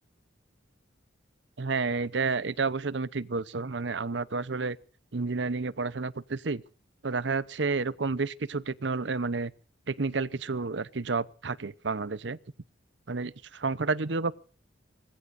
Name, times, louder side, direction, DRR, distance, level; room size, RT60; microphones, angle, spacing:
voice 1, 1.6-4.8 5.1-6.6 7.0-9.5 9.9-12.4 13.1-14.3, right 4 dB, 65° right, 0.8 m, -30 dB
25.0 x 20.0 x 2.6 m
head